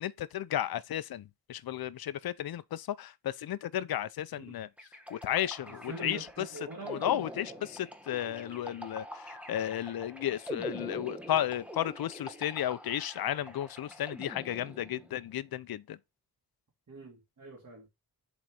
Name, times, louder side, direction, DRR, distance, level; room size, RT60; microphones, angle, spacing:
voice 1, 0.0-4.7 5.1-6.5 6.8-16.0, left 11 dB, 70° left, 0.6 m, -34 dB
sound 1, 4.8-15.2, equal, 5° right, 1.2 m, -45 dB
voice 2, 5.7-7.1 7.5-7.6 16.9-17.9, right 2 dB, 50° right, 2.3 m, -43 dB
7.5 x 4.1 x 4.7 m
wide cardioid pair, 145°, 38 cm